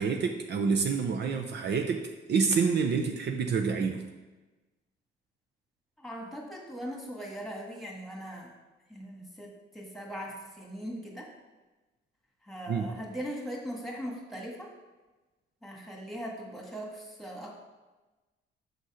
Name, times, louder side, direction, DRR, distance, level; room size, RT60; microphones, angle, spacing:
voice 1, 0.0-4.0 12.7-12.9, right 5 dB, 60° right, 4 dB, 0.6 m, -28 dB
voice 2, 6.0-8.5 8.9-11.3 12.4-14.7 15.6-17.5, equal, ahead, -1 dB, 1.7 m, -40 dB
6.5 x 4.1 x 4.9 m, 1.2 s
cardioid pair, 90°, 20 cm